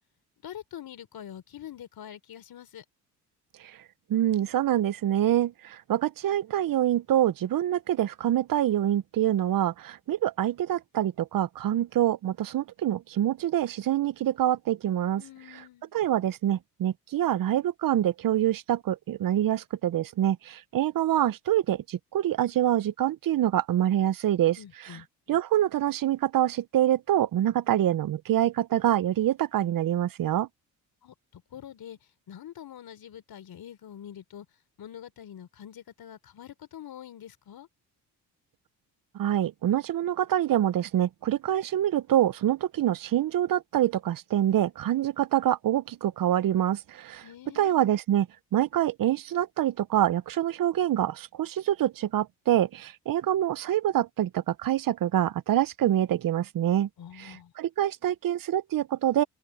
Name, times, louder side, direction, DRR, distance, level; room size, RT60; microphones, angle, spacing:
voice 1, 0.4-2.8 15.2-15.9 24.6-25.1 31.0-32.0 32.3-34.5 34.8-37.7 47.2-47.8 57.0-57.5, left 10 dB, 60° left, 3.8 m, -45 dB
voice 2, 4.1-15.2 15.5-15.6 15.9-25.0 25.3-30.5 39.1-47.2 47.6-56.9 57.2-59.2, right 12 dB, 55° right, 0.9 m, -26 dB
supercardioid pair, 75°, 41 cm